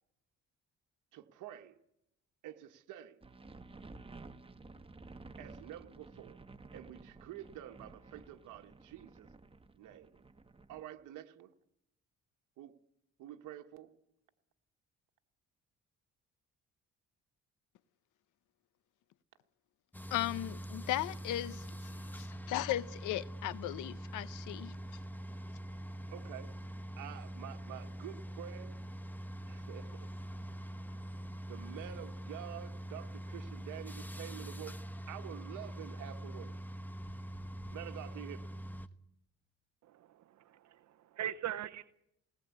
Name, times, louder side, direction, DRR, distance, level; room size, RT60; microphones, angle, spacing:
voice 1, 1.1-1.7 2.4-3.2 5.4-6.4 6.7-9.3 9.7-10.2 10.7-11.5 12.6-12.7 13.2-13.9 26.1-26.5 27.0-28.8 29.4-30.1 31.5-34.8 35.1-36.6 37.7-38.5, right 12 dB, 85° right, 1.4 m, -48 dB
sound 1, 3.2-10.8, right 3 dB, 20° right, 1.3 m, -53 dB
sound 2, 19.9-38.9, right 1 dB, 5° left, 1.1 m, -44 dB
voice 2, 20.1-24.8, left 14 dB, 90° left, 0.8 m, -37 dB
voice 3, 39.8-41.8, right 11 dB, 65° right, 0.8 m, -41 dB
20.5 x 19.0 x 8.4 m
cardioid pair, 90°, 30 cm